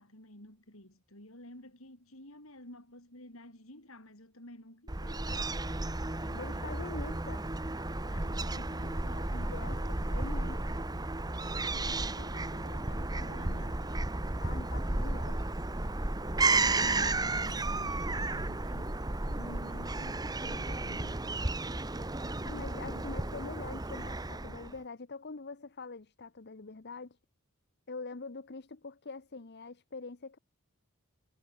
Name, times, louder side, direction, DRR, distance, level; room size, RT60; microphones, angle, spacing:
voice 1, 0.0-5.3 6.2-6.8 8.0-9.8 11.7-14.0 16.4-23.1, left 1 dB, 65° left, 7.6 m, -52 dB
Fowl / Gull seagull, 4.9-24.8, right 2 dB, 20° right, 1.2 m, -33 dB
voice 2, 6.4-7.4 9.5-10.8 14.4-15.5 19.3-19.4 22.4-27.2 27.9-30.4, left 3 dB, 50° left, 0.9 m, -44 dB
head